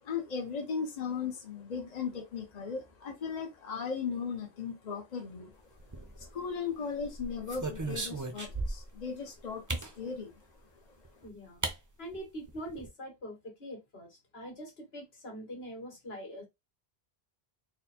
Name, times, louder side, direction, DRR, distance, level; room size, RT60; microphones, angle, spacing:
voice 1, 0.0-11.3, left 6 dB, 45° left, 1.0 m, -38 dB
sound 1, 5.8-6.5 7.0-9.0 9.7-9.9 11.0-11.1 11.6-11.8 12.1-12.2 12.5-12.9, right 2 dB, 20° right, 0.6 m, -36 dB
voice 2, 11.2-11.7 12.0-16.4, equal, 80° left, 1.9 m, -44 dB
4.3 x 2.2 x 4.2 m
omnidirectional pair, 1.0 m